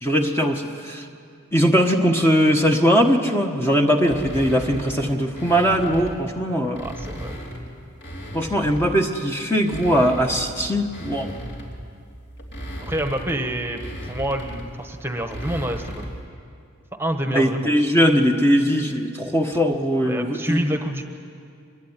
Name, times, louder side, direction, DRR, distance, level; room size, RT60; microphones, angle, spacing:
voice 1, 0.0-1.1 1.5-6.8 8.3-11.3 17.3-20.7, equal, 10° left, 2 dB, 1.3 m, -20 dB
sound 1, 4.0-6.2 6.6-9.1 9.5-16.3, equal, 50° left, 3.3 m, -36 dB
voice 2, 6.7-7.4 12.8-13.8 14.1-16.0 17.0-17.7 20.0-21.0, right 1 dB, 10° right, 5 dB, 1.4 m, -27 dB
25.0 x 21.0 x 9.9 m, 2.4 s
head